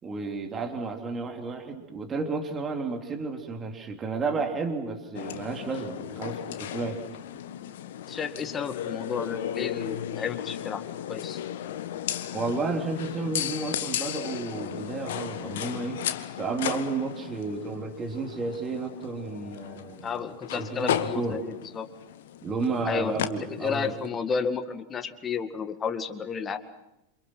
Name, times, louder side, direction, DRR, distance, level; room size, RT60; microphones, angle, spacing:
voice 1, 0.0-7.0 12.3-16.0 16.4-20.1 20.5-21.4 22.4-23.9, right 4 dB, 20° right, 5 dB, 3.3 m, -32 dB
Stairwell Sounds, 5.1-24.1, left 10 dB, 55° left, 1.4 m, -35 dB
voice 2, 8.1-10.8 11.1-11.4 20.0-21.9 22.9-23.1 23.5-26.6, left 6 dB, 20° left, 9 dB, 2.0 m, -32 dB
28.0 x 27.0 x 6.1 m, 0.88 s
figure-of-eight pair, 90°, 0 cm